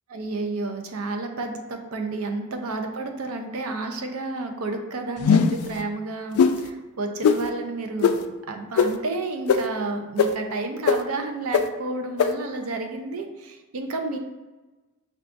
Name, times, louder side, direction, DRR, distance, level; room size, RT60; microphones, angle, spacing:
voice 1, 0.1-8.2 8.5-14.2, right 3 dB, 80° right, 5 dB, 0.5 m, -31 dB
sound 1, 5.2-5.7 6.4-6.5 7.2-7.4 8.0-8.1 8.8-8.9 9.5-9.6 10.2-10.3 10.9-11.0 11.5-11.6 12.2-12.3, left 6 dB, 80° left, 0.3 m, -18 dB
5.8 x 2.3 x 2.5 m, 1.2 s
head